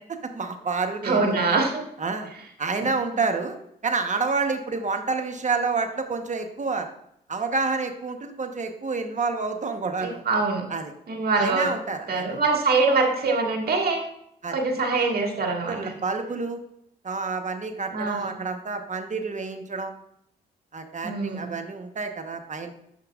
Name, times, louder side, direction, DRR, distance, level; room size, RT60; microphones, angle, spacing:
voice 1, 0.3-1.4 2.0-2.3 2.6-3.6 3.8-6.9 7.3-10.2 10.7-10.9 11.4-12.4 14.4-14.6 15.6-16.6 17.0-19.9 20.7-22.7, right 4 dB, 40° right, 6 dB, 1.0 m, -28 dB
voice 2, 1.0-1.7 2.8-2.9 10.0-10.6 11.1-11.7 12.1-14.1 14.5-15.9 17.9-18.3 21.0-21.5, right 3 dB, 60° right, 1 dB, 1.8 m, -24 dB
8.7 x 7.0 x 2.4 m, 0.75 s
supercardioid pair, 50°, 18 cm